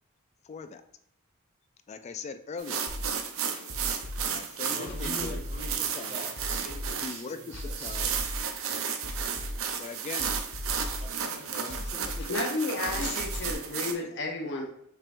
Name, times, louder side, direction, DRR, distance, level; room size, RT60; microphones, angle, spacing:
voice 1, 0.4-0.8 1.9-2.9 4.2-5.4 5.7-6.3 7.0-8.2 9.8-10.4 11.5-12.3 12.9-13.2 14.0-14.2, left 4 dB, 30° left, 9 dB, 0.3 m, -41 dB
sound 1, 2.6-13.9, right 7 dB, 65° right, 0.5 m, -33 dB
sound 2, 2.9-13.5, left 1 dB, 90° left, 0.8 m, -38 dB
voice 2, 4.2-7.9 11.0-11.8, equal, 30° right, -3 dB, 1.6 m, -43 dB
voice 3, 12.3-14.6, left 3 dB, 55° left, 0 dB, 0.8 m, -32 dB
5.6 x 3.5 x 2.5 m, 0.74 s
head